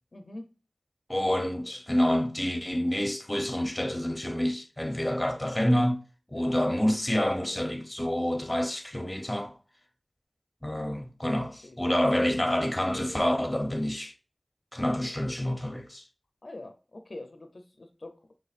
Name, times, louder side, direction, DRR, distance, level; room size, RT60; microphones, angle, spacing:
voice 1, 0.1-0.5 6.3-6.6 11.6-11.8 16.4-18.2, left 2 dB, 75° left, 0.6 m, -44 dB
voice 2, 1.1-6.0 6.3-9.5 10.6-14.1 14.7-16.0, left 1 dB, 25° left, 0.9 m, -28 dB
5.6 x 3.8 x 2.5 m
wide cardioid pair, 40°, 0 cm